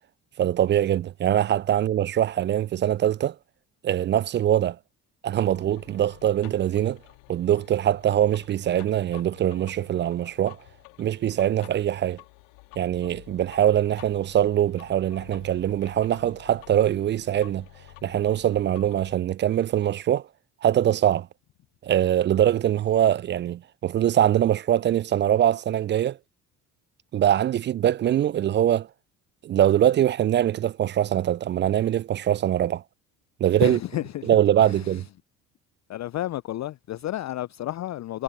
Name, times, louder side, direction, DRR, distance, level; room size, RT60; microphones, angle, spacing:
voice 1, 0.4-3.4 3.8-4.8 5.2-7.0 7.3-10.6 11.0-12.2 12.8-17.7 18.0-20.3 20.6-21.3 21.8-26.2 27.1-28.9 29.4-32.8 33.4-33.8 34.3-35.1, right 11 dB, 25° right, 0.3 m, -23 dB
sound 1, 5.4-19.2, left 34 dB, 70° left, 2.1 m, -50 dB
voice 2, 33.6-34.3 34.6-35.0 35.9-38.2, left 14 dB, 35° left, 0.6 m, -31 dB
figure-of-eight pair, 50°, 49 cm